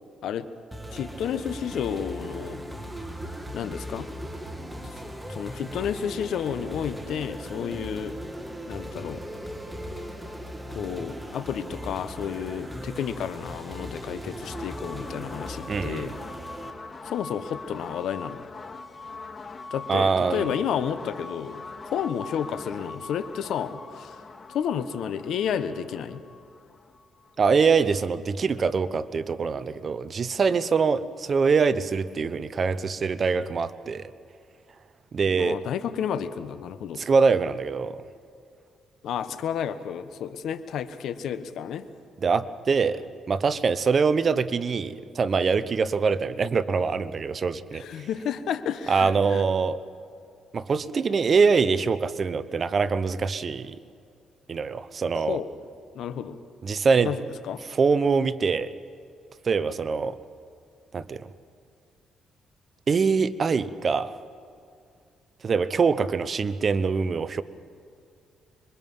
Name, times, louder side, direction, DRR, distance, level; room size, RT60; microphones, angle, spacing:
sound 1, 0.7-16.7, equal, 5° right, 2.2 m, -38 dB
voice 1, 0.9-2.6 3.5-4.1 5.3-8.2 8.6-9.2 10.7-16.2 17.0-18.5 19.7-21.6 21.9-24.2 24.5-26.2 35.3-37.0 39.0-41.9 47.7-49.4 55.1-55.5 55.9-56.4 57.0-57.6, left 8 dB, 75° left, 12 dB, 1.1 m, -31 dB
sound 2, 14.4-28.0, left 4 dB, 35° left, 1.3 m, -42 dB
voice 2, 15.7-16.1 19.9-20.5 27.4-34.0 35.1-35.6 37.0-38.0 42.2-48.1 48.9-49.8 50.5-53.8 54.5-55.4 56.6-57.1 57.7-58.7 59.4-60.2 60.9-61.3 62.9-64.1 65.4-67.4, right 5 dB, 45° right, 14 dB, 0.9 m, -24 dB
26.0 x 23.0 x 5.5 m, 2.3 s
cardioid pair, 90°, 0 cm